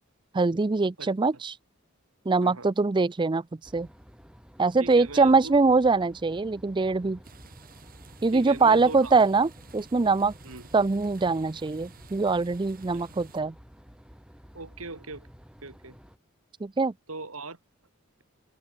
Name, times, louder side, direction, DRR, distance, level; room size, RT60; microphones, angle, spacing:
voice 1, 0.3-1.5 2.3-3.4 3.7-3.9 4.6-7.2 8.2-10.3 10.7-13.5 16.6-16.9, right 3 dB, 20° right, 0.4 m, -23 dB
voice 2, 2.4-2.7 4.8-5.5 8.3-9.1 10.4-10.7 12.9-13.1 14.5-15.3 15.6-16.0 17.1-17.6, right 3 dB, 80° right, 4.0 m, -40 dB
sound 1, 3.6-16.2, equal, 5° right, 2.1 m, -52 dB
sound 2, 7.2-13.4, right 3 dB, 45° right, 2.6 m, -51 dB
head